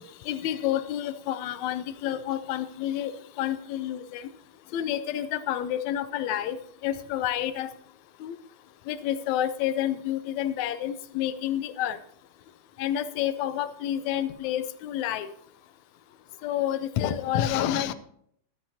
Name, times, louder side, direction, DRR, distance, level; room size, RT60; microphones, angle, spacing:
voice 1, 0.0-4.3 4.7-7.7 8.2-8.4 8.9-12.0 12.8-15.3 16.4-17.9, left 11 dB, 75° left, 12 dB, 1.9 m, -29 dB
14.0 x 13.0 x 2.8 m, 0.66 s
omnidirectional pair, 3.6 m